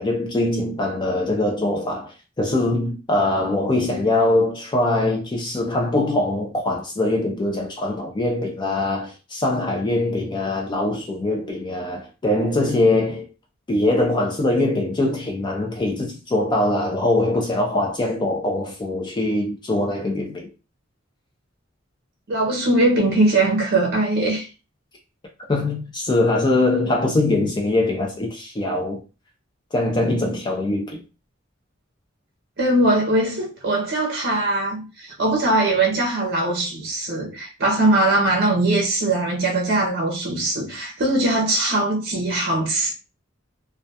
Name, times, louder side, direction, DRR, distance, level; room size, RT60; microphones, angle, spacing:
voice 1, 0.0-13.3 13.7-20.5 25.5-29.0 29.7-31.0, left 2 dB, 25° left, 0.4 m, -22 dB
voice 2, 22.3-24.5 32.6-42.9, right 2 dB, 50° right, 0.6 m, -21 dB
2.2 x 2.2 x 2.6 m
head